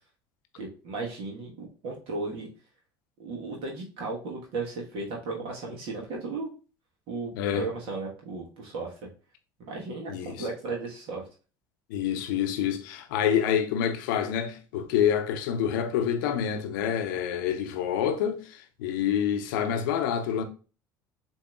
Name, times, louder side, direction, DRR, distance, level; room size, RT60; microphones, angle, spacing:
voice 1, 0.6-2.5 3.2-6.5 7.1-8.9 9.7-11.2, right 3 dB, 55° right, 1.3 m, -35 dB
voice 2, 7.4-7.7 10.1-10.5 11.9-20.4, left 9 dB, 70° left, 0.7 m, -27 dB
7.0 x 2.8 x 2.4 m
hypercardioid pair, 70°, 11 cm